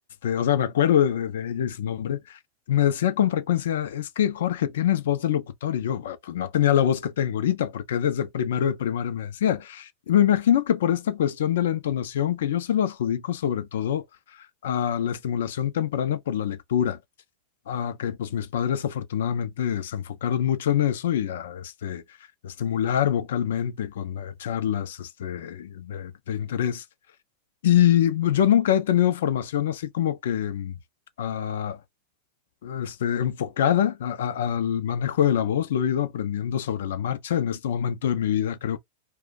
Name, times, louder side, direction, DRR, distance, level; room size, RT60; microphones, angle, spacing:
voice 1, 0.2-2.4 2.7-14.0 14.6-17.0 17.7-22.0 22.4-26.8 27.6-30.7 31.2-31.8 32.6-38.8, left 10 dB, 70° left, 0.5 m, -25 dB
2.5 x 2.2 x 3.8 m
hypercardioid pair, 95°, 0 cm